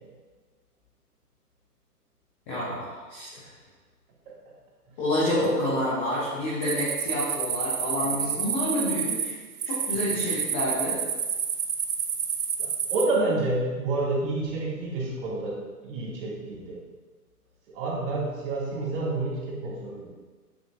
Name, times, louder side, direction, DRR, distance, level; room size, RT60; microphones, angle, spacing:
voice 1, 2.5-3.5 5.0-9.4 9.6-11.0, left 1 dB, 10° left, -8 dB, 0.4 m, -28 dB
sound 1, 6.6-13.0, right 7 dB, 70° right, 0.9 m, -29 dB
voice 2, 8.0-8.4 9.9-10.3 12.6-16.8 17.7-20.1, right 2 dB, 35° right, -5 dB, 2.3 m, -29 dB
9.2 x 6.2 x 2.5 m, 1.3 s
hypercardioid pair, 130°, 47 cm